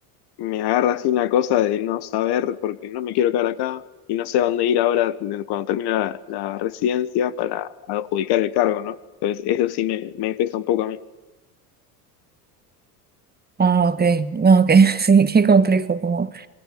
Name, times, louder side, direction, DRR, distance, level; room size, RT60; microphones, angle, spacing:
voice 1, 0.4-3.8 4.1-9.0 9.2-11.0, left 11 dB, 55° left, 1.5 m, -23 dB
voice 2, 13.6-16.5, right 5 dB, 20° right, 1.5 m, -17 dB
27.5 x 21.5 x 9.5 m
hypercardioid pair, 80°, 48 cm